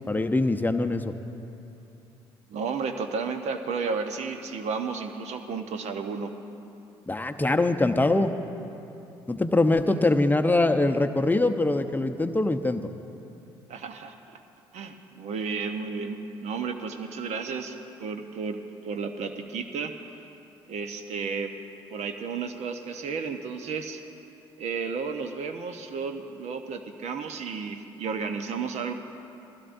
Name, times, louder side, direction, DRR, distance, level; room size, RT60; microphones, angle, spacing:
voice 1, 0.1-1.1 7.1-8.3 9.3-12.8, left 2 dB, 15° left, 7 dB, 0.7 m, -23 dB
voice 2, 2.5-6.3 9.9-10.0 13.7-14.4 14.7-18.6 18.8-19.9 20.7-21.5 21.9-24.0 24.6-28.9, right 5 dB, 60° right, 6 dB, 1.0 m, -33 dB
20.5 x 15.5 x 2.6 m, 2.8 s
hypercardioid pair, 50°, 13 cm